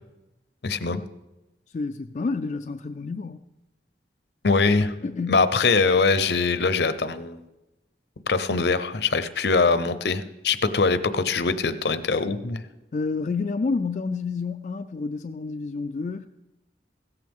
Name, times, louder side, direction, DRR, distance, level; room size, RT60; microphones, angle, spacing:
voice 1, 0.6-1.0 4.4-4.9 5.3-7.4 8.3-12.6, left 4 dB, 70° left, 0.7 m, -22 dB
voice 2, 1.7-3.4 5.0-5.5 12.9-16.3, left 4 dB, 40° left, 0.3 m, -29 dB
16.0 x 14.0 x 3.6 m
head